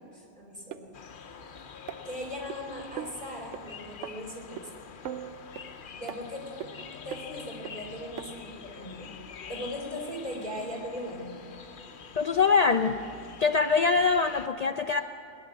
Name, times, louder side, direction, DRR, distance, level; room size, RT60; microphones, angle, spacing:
voice 1, 0.1-0.9 2.0-4.7 6.0-6.7 7.0-9.1 9.5-11.4, left 1 dB, 45° right, -2 dB, 3.8 m, -39 dB
sound 1, 0.7-0.8 1.9-2.6 3.0-3.2 3.5-3.6 4.0-4.1 4.6-4.7 5.0-5.7 6.1-6.2 6.6-6.7 7.1-7.2 7.6-7.7 8.2-8.3 8.9-9.0, right 10 dB, 75° right, 1.0 m, -38 dB
sound 2, 0.9-14.5, left 6 dB, 50° left, 0.8 m, -46 dB
voice 2, 12.2-13.0 13.4-15.0, left 5 dB, 85° left, 7 dB, 0.3 m, -23 dB
18.0 x 11.0 x 7.3 m, 2.7 s
omnidirectional pair, 1.3 m